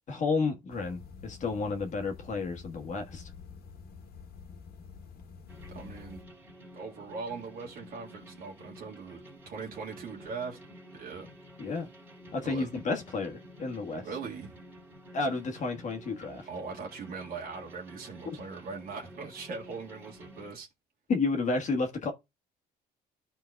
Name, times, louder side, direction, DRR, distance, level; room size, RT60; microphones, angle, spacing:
voice 1, 0.1-3.3 11.6-11.9 12.3-14.1 15.1-16.5 21.1-22.1, left 3 dB, 45° left, 1.4 m, -31 dB
sound 1, 0.7-6.2, left 5 dB, 65° left, 1.6 m, -48 dB
sound 2, 5.5-20.5, equal, 10° right, 2.2 m, -51 dB
voice 2, 5.7-6.2 6.7-10.6 10.9-11.3 12.4-12.7 14.0-14.6 16.5-20.7, right 4 dB, 60° right, 1.8 m, -40 dB
13.0 x 4.5 x 2.3 m
cardioid pair, 110°, 17 cm